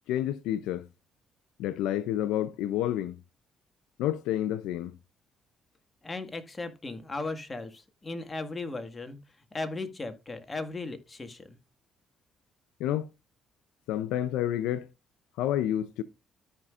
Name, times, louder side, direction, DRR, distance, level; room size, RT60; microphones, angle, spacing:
voice 1, 0.1-0.9 1.6-3.2 4.0-4.9 12.8-13.1 13.9-14.9 15.4-16.0, left 12 dB, 90° left, 0.5 m, -29 dB
voice 2, 6.0-9.2 9.5-11.6, left 3 dB, 25° left, 1.8 m, -37 dB
13.5 x 5.5 x 2.5 m
supercardioid pair, 75°, 0 cm